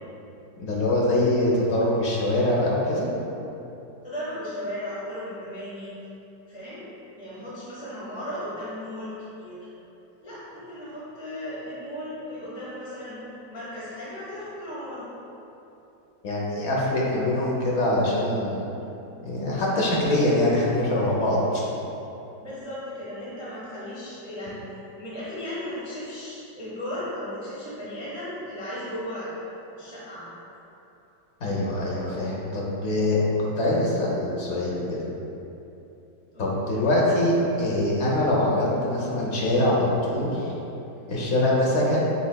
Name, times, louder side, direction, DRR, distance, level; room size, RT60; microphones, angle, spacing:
voice 1, 0.6-3.1 16.2-18.6 19.2-21.6 31.4-33.2 33.6-35.0 36.4-40.5 41.1-42.0, left 1 dB, 55° left, -5 dB, 0.8 m, -23 dB
voice 2, 4.0-5.9 6.5-6.9 7.2-9.7 10.2-13.2 13.5-15.1 22.4-24.6 25.0-29.3 29.8-30.3 36.3-36.5, left 1 dB, 5° right, -10 dB, 0.6 m, -36 dB
6.9 x 3.2 x 2.2 m, 2.9 s
omnidirectional pair, 2.0 m